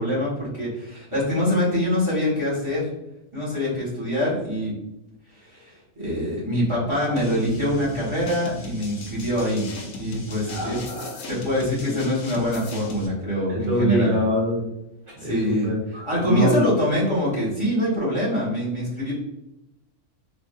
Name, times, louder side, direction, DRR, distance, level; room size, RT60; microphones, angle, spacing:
voice 1, 0.0-2.9 3.3-4.7 5.5-9.7 10.0-10.8 11.3-14.1 15.2-15.7 16.0-19.1, equal, 20° right, -8 dB, 1.4 m, -24 dB
sound 1, 7.2-13.1, left 2 dB, 70° left, 1.0 m, -37 dB
voice 2, 10.5-11.2 11.8-11.9 13.5-14.7 15.2-16.7, equal, 65° right, -7 dB, 1.7 m, -25 dB
3.7 x 2.7 x 2.5 m, 0.88 s
omnidirectional pair, 1.6 m